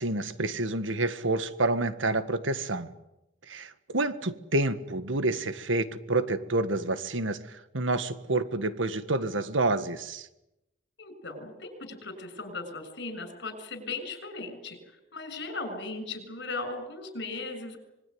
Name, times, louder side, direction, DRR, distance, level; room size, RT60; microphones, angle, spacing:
voice 1, 0.0-2.9 3.5-10.3, right 2 dB, 85° right, 11 dB, 1.7 m, -28 dB
voice 2, 11.0-17.8, left 3 dB, 65° left, 8 dB, 6.8 m, -38 dB
26.0 x 22.0 x 9.6 m, 0.93 s
head